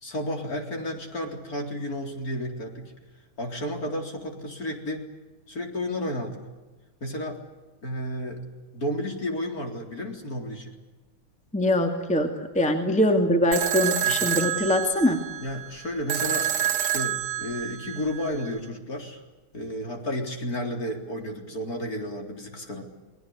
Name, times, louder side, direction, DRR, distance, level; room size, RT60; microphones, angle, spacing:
voice 1, 0.0-2.9 3.4-5.1 5.5-6.4 7.0-7.4 7.8-8.4 8.7-10.7 14.0-14.2 15.4-19.2 19.5-22.8, equal, 40° left, 3 dB, 4.3 m, -32 dB
voice 2, 11.5-12.3 12.5-15.2, left 1 dB, 5° left, 5 dB, 2.2 m, -22 dB
sound 1, 13.5-18.5, right 10 dB, 80° right, 2.4 m, -28 dB
28.5 x 21.0 x 8.3 m, 1.2 s
omnidirectional pair, 2.4 m